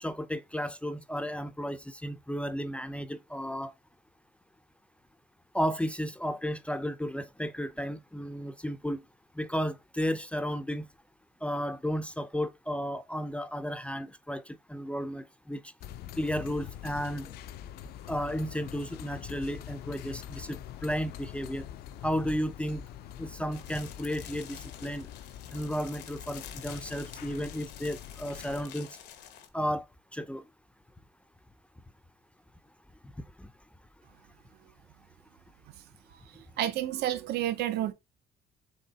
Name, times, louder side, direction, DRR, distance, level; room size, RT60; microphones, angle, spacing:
voice 1, 0.0-3.7 5.5-9.0 9.4-10.9 11.4-15.6 16.2-17.3 18.1-21.7 22.0-22.8 23.2-25.1 25.5-28.9 29.5-29.8 30.1-30.4 33.4-33.5, equal, 5° left, 0.4 m, -33 dB
sound 1, 15.8-28.7, left 11 dB, 70° left, 0.5 m, -44 dB
sound 2, 23.5-29.5, left 10 dB, 85° left, 1.0 m, -49 dB
voice 2, 36.3-37.9, right 12 dB, 70° right, 0.6 m, -30 dB
4.4 x 2.9 x 3.9 m
cardioid pair, 110°, 17 cm